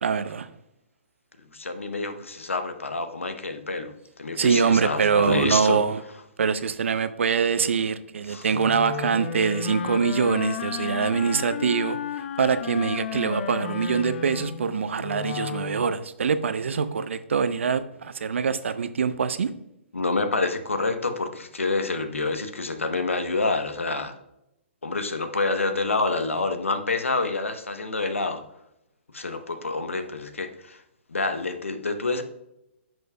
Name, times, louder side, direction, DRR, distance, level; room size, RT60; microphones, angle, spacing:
voice 1, 0.0-0.5 4.4-6.0 6.4-12.0 12.4-19.5, right 6 dB, 75° right, 0.6 m, -24 dB
voice 2, 1.5-5.8 8.3-8.5 19.9-24.1 24.8-28.4 29.1-30.8 31.1-32.2, left 3 dB, 90° left, 1.0 m, -27 dB
Wind instrument woodwind instrument, 8.5-15.9, left 9 dB, 55° left, 0.6 m, -33 dB
10.0 x 6.2 x 2.3 m
figure-of-eight pair, 125°, 7 cm